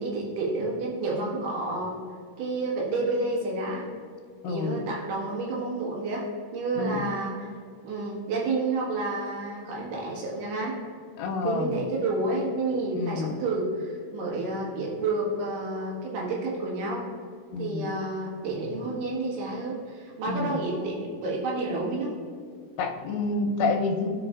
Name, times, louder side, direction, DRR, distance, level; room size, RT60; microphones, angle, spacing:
voice 1, 0.0-2.0 2.4-3.9 4.4-6.2 6.5-7.5 7.8-10.8 11.4-17.0 17.6-22.1, right 2 dB, 75° right, -4 dB, 3.6 m, -30 dB
voice 2, 4.4-4.8 6.8-7.1 11.2-11.7 12.9-13.3 17.5-17.9 20.3-20.6 22.8-24.1, left 4 dB, 90° left, 3 dB, 3.0 m, -28 dB
15.0 x 5.2 x 2.5 m, 2.2 s
omnidirectional pair, 4.7 m